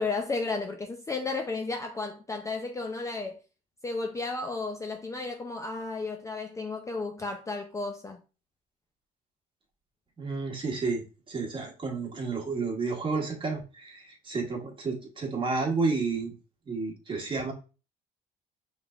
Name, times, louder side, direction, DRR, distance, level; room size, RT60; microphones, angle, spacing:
voice 1, 0.0-3.4 3.8-8.2, left 3 dB, 20° left, 0.5 m, -33 dB
voice 2, 10.2-16.3 16.7-17.5, right 4 dB, 30° right, 1.5 m, -31 dB
5.1 x 3.3 x 2.4 m
cardioid pair, 110°, 17 cm